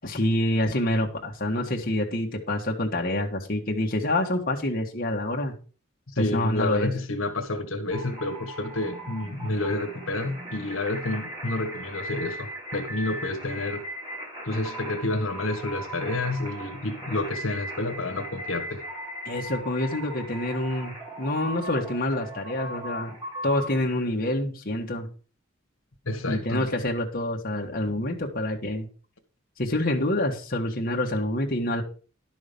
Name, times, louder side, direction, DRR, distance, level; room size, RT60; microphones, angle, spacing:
voice 1, 0.0-5.5 6.2-6.9 19.3-23.2 23.4-25.1 26.3-28.9 29.6-31.8, left 1 dB, 45° left, 1.7 m, -27 dB
voice 2, 6.2-13.8 14.5-18.8 26.1-26.7, left 2 dB, 75° left, 1.6 m, -29 dB
sound 1, 7.9-23.8, right 1 dB, 25° right, 5.7 m, -38 dB
11.5 x 6.2 x 5.3 m
head